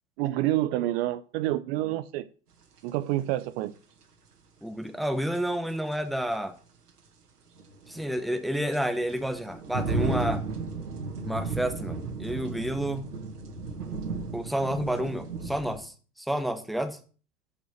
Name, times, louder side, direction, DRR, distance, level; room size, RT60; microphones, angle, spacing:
voice 1, 0.2-2.2 2.8-3.7, right 15 dB, 40° right, 13 dB, 0.7 m, -28 dB
sound 1, 2.8-2.9 5.4-5.5 5.9-6.0 7.6-15.8, right 3 dB, 80° right, 2.1 m, -34 dB
voice 2, 4.6-6.6 7.9-10.4 11.2-13.1 14.3-17.0, equal, ahead, 8 dB, 1.2 m, -30 dB
8.7 x 6.2 x 7.5 m, 0.39 s
figure-of-eight pair, 90°, 46 cm